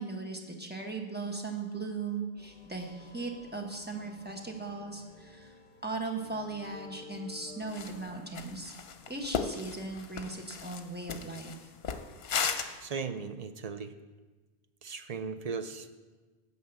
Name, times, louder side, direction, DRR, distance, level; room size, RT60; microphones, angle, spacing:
voice 1, 0.0-5.5 5.8-8.7 9.1-11.7, right 3 dB, 10° right, 1 dB, 1.1 m, -38 dB
sound 1, 2.4-8.0, left 2 dB, 50° left, 1.3 m, -52 dB
sound 2, 7.7-8.0 8.3-12.9, left 6 dB, 80° left, 1.0 m, -35 dB
voice 2, 12.8-13.9 14.8-15.9, right 5 dB, 50° right, 9 dB, 0.5 m, -37 dB
9.5 x 5.6 x 8.0 m, 1.3 s
omnidirectional pair, 1.0 m